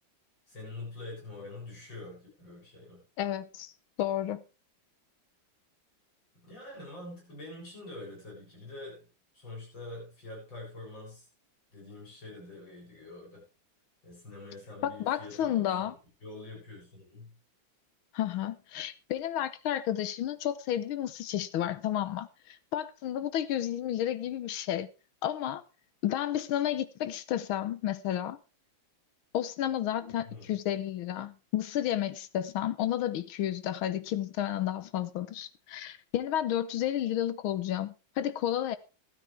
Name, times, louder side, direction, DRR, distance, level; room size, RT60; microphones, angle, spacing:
voice 1, 0.5-3.0 6.3-9.1 9.3-11.2 11.7-13.4 14.0-15.9 16.2-17.3 30.2-30.6, left 2 dB, 65° left, 8.1 m, -45 dB
voice 2, 3.2-3.7 4.0-4.4 14.8-15.9 18.1-24.9 25.2-25.6 26.0-28.4 29.3-38.8, left 11 dB, 85° left, 1.7 m, -31 dB
13.0 x 12.5 x 3.4 m
omnidirectional pair, 2.2 m